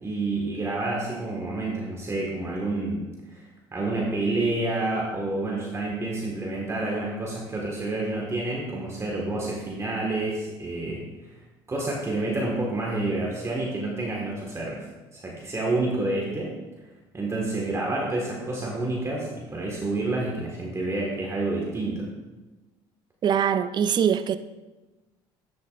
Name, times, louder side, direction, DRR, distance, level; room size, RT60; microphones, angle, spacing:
voice 1, 0.0-3.1 3.3-11.0 11.3-11.4 11.7-14.8 15.1-16.5 17.1-22.1, right 2 dB, 25° right, 1.7 m, -29 dB
voice 2, 23.2-24.4, right 8 dB, 40° right, 0.4 m, -22 dB
10.0 x 7.1 x 2.6 m
supercardioid pair, 80°, 11 cm